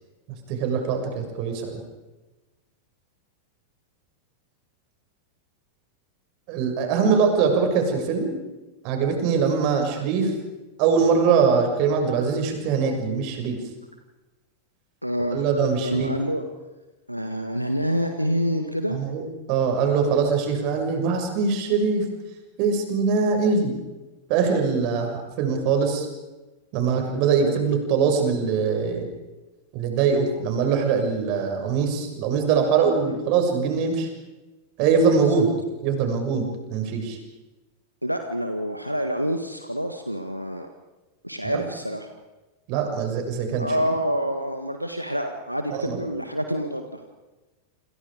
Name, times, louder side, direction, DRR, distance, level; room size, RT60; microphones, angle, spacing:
voice 1, 0.5-1.8 6.5-8.4 8.8-10.3 10.8-13.6 15.3-16.1 18.9-19.2 19.5-22.0 22.6-23.7 24.3-26.1 26.7-29.1 29.7-34.1 34.8-35.5 35.8-37.2 41.5-41.6 42.7-43.7 45.7-46.0, right 5 dB, 45° right, 4 dB, 6.7 m, -22 dB
voice 2, 15.0-15.4 15.8-16.4 17.1-19.0 27.3-27.6 35.1-35.2 38.0-40.7 41.2-42.1 43.6-47.0, equal, 90° right, 5 dB, 1.8 m, -27 dB
28.5 x 27.5 x 5.2 m, 1.1 s
figure-of-eight pair, 90°, 0 cm